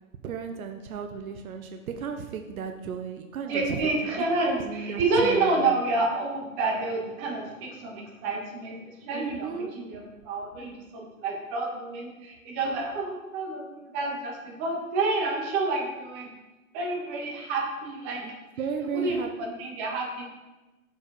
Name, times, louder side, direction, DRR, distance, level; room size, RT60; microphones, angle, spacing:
voice 1, 0.2-3.8 4.4-5.6 9.1-9.7 18.2-18.3 18.6-19.3, right 7 dB, 80° right, 5 dB, 0.9 m, -34 dB
voice 2, 3.5-16.3 16.7-18.2 18.9-20.2, right 3 dB, 30° right, -1 dB, 1.9 m, -29 dB
6.4 x 5.1 x 5.2 m, 1.1 s
hypercardioid pair, 150°, 41 cm